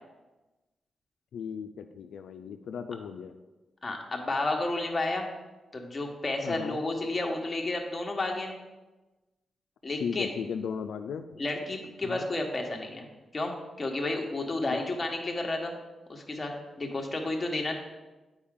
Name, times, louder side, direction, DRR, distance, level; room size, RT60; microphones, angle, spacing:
voice 1, 1.3-3.4 6.4-6.8 10.0-11.3 12.0-12.3 14.7-14.9, left 7 dB, 90° left, 6 dB, 0.3 m, -36 dB
voice 2, 3.8-5.3 5.7-8.5 9.8-10.3 11.4-13.1 13.3-15.7 16.1-17.8, left 2 dB, 25° left, 1 dB, 1.1 m, -31 dB
8.6 x 4.8 x 3.6 m, 1.1 s
cardioid pair, 100°, 0 cm